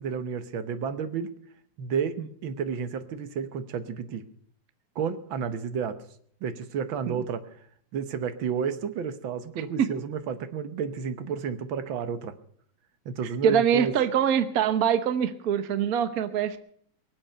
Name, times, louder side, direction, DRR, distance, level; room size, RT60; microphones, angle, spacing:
voice 1, 0.0-1.3 1.8-4.2 5.0-6.0 6.4-7.4 7.9-12.3 13.1-13.9, right 6 dB, 80° right, 11 dB, 1.8 m, -31 dB
voice 2, 13.4-16.6, right 8 dB, 55° right, 11 dB, 1.3 m, -24 dB
23.0 x 7.9 x 6.7 m, 0.62 s
omnidirectional pair, 2.1 m